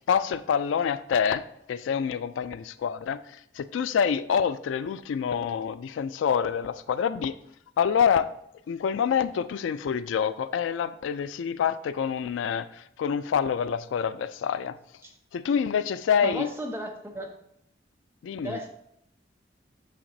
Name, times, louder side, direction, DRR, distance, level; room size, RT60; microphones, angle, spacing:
voice 1, 0.1-3.2 3.6-7.3 7.8-8.3 8.7-14.8 15.3-16.5 18.2-18.6, left 7 dB, 90° left, 14 dB, 0.3 m, -26 dB
voice 2, 16.2-17.4 18.4-18.7, right 1 dB, 15° right, 1 dB, 0.7 m, -35 dB
6.5 x 5.8 x 2.7 m, 0.73 s
head